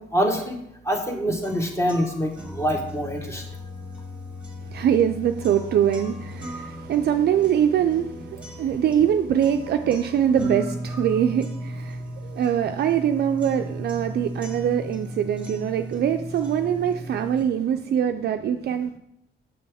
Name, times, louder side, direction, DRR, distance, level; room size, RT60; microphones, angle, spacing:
voice 1, 0.1-0.6 0.8-3.4, equal, 15° left, 2 dB, 1.3 m, -25 dB
sound 1, 1.4-17.4, equal, 5° right, 1.6 m, -36 dB
voice 2, 4.7-18.9, right 9 dB, 55° right, 6 dB, 0.4 m, -23 dB
6.9 x 5.2 x 3.5 m, 0.78 s
cardioid pair, 90°, 20 cm